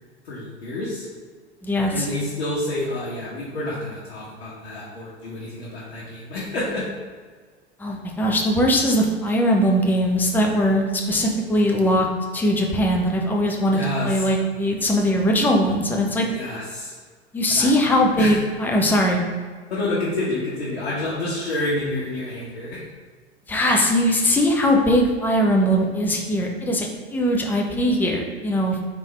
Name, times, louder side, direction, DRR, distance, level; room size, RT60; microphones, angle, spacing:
voice 1, 0.2-1.1 1.9-6.9 13.7-14.2 16.3-16.9 17.5-17.7 18.2-18.4 19.7-22.8, left 2 dB, 65° left, -8 dB, 1.1 m, -28 dB
voice 2, 1.6-2.1 7.8-12.1 12.3-16.3 17.3-19.2 23.5-28.8, equal, 5° left, 1 dB, 0.4 m, -20 dB
3.6 x 3.4 x 3.2 m, 1.5 s
figure-of-eight pair, 80°, 33 cm